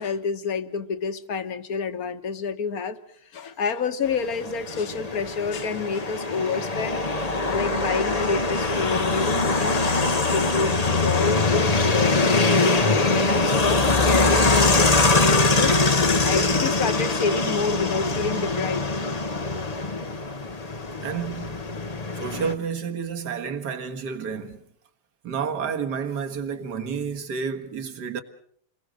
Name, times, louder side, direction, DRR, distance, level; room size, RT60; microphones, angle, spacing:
voice 1, 0.0-7.1 7.5-18.8, left 5 dB, 50° left, 1.6 m, -29 dB
sound 1, 4.1-22.5, left 3 dB, 30° left, 0.8 m, -22 dB
voice 2, 21.0-21.7 22.1-24.6 25.2-28.2, right 6 dB, 50° right, 2.2 m, -30 dB
28.5 x 21.5 x 6.4 m
omnidirectional pair, 2.4 m